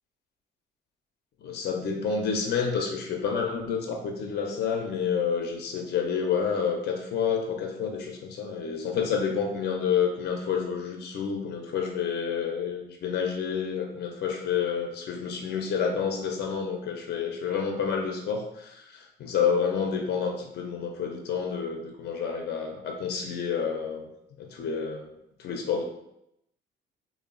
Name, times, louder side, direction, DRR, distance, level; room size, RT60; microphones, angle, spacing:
voice 1, 1.4-24.1 24.4-25.1 25.4-25.8, left 6 dB, 55° left, 2 dB, 0.4 m, -29 dB
2.9 x 2.0 x 2.4 m, 0.82 s
cardioid pair, 90°, 20 cm